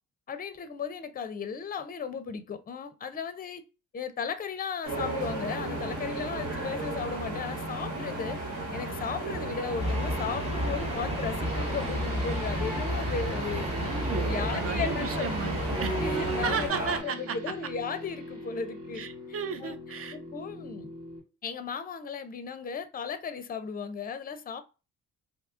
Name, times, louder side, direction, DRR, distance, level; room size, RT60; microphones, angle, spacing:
voice 1, 0.3-3.6 3.9-8.4 8.7-13.7 14.3-15.3 15.9-16.7 17.0-19.8 20.1-20.9 21.4-24.6, left 5 dB, 30° left, 0.5 m, -36 dB
sound 1, 4.8-17.0, right 2 dB, 65° right, 1.5 m, -34 dB
sound 2, 9.8-16.7, equal, 20° right, 1.0 m, -32 dB
sound 3, 11.4-21.2, left 1 dB, 80° right, 1.7 m, -44 dB
voice 2, 13.7-17.4 18.9-20.2, right 6 dB, 50° right, 0.6 m, -34 dB
2.7 x 2.4 x 3.5 m
cardioid pair, 90°, 30 cm